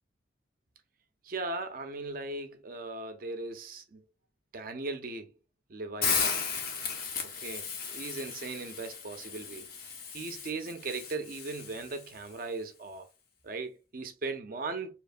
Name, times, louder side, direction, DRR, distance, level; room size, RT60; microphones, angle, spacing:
voice 1, 1.2-4.0 4.5-5.3 5.7-6.3 7.2-9.7 10.1-13.1 13.4-14.9, right 3 dB, 45° right, 0.5 m, -38 dB
Hiss, 6.0-12.1, left 6 dB, 50° left, 0.6 m, -35 dB
2.9 x 2.1 x 2.4 m
head